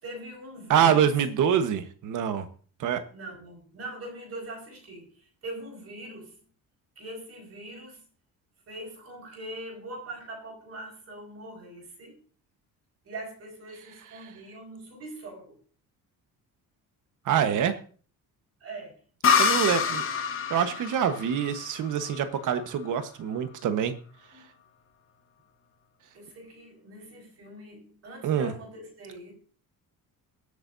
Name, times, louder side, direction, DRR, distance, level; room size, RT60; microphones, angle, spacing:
voice 1, 0.0-1.1 3.1-6.4 6.9-8.0 8.7-12.2 13.0-15.6 18.6-19.0 19.3-20.2 24.3-24.4 26.1-29.3, right 1 dB, 40° right, 0 dB, 5.0 m, -42 dB
voice 2, 0.7-2.5 2.8-3.0 17.2-17.8 19.4-20.0 20.5-24.0 28.2-28.5, right 8 dB, 60° right, 9 dB, 1.3 m, -25 dB
sound 1, 19.2-22.8, left 6 dB, 35° left, 1.1 m, -27 dB
22.0 x 8.4 x 2.7 m, 0.41 s
cardioid pair, 170°, 35 cm